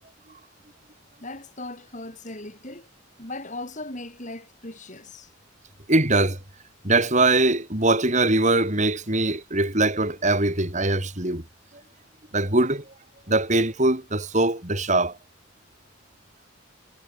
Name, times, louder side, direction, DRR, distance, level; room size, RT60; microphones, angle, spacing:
voice 1, 1.2-2.9 3.2-5.3, left 2 dB, 35° left, 6.6 m, -38 dB
voice 2, 5.9-6.4 6.8-11.4 12.3-12.8 13.3-15.2, right 2 dB, 35° right, 4.9 m, -22 dB
head